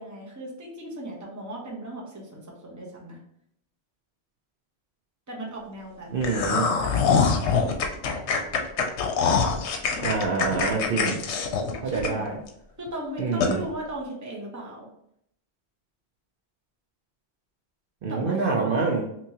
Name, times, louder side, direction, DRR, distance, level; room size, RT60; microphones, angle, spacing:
voice 1, 0.0-3.2 5.3-6.1 6.8-8.1 11.8-12.4 12.8-14.9 18.1-18.4 18.7-18.9, right 1 dB, 20° right, -3 dB, 0.8 m, -37 dB
voice 2, 6.1-6.7 10.0-11.2 11.8-12.4 13.2-13.6 18.0-19.0, right 4 dB, 60° right, -1 dB, 0.7 m, -26 dB
sound 1, 6.2-12.5 12.9-13.0 13.4-13.5, left 5 dB, 85° left, 0.9 m, -24 dB
3.5 x 2.9 x 2.8 m, 0.73 s
omnidirectional pair, 1.1 m